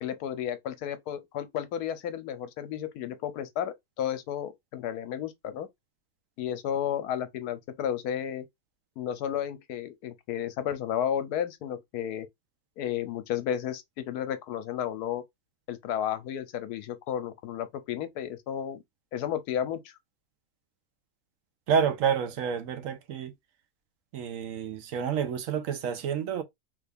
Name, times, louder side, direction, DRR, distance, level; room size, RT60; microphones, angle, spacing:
voice 1, 0.0-5.7 6.4-8.4 9.0-12.3 12.8-15.2 15.7-18.8 19.1-19.9, left 9 dB, 80° left, 1.1 m, -32 dB
voice 2, 21.7-23.3 24.1-26.4, right 7 dB, 65° right, 0.9 m, -29 dB
3.4 x 2.3 x 3.4 m
omnidirectional pair, 1.7 m